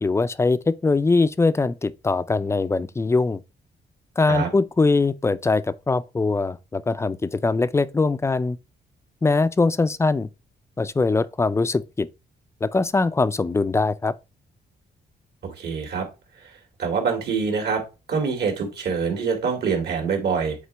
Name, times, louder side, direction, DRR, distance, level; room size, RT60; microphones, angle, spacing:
voice 1, 0.0-3.4 4.2-8.6 9.2-10.3 10.8-12.1 12.6-14.1, left 3 dB, 15° left, 0.3 m, -22 dB
voice 2, 15.4-16.1 16.8-17.8 18.1-20.6, right 5 dB, 70° right, 2.3 m, -25 dB
8.1 x 4.3 x 3.3 m
wide cardioid pair, 145°, 17 cm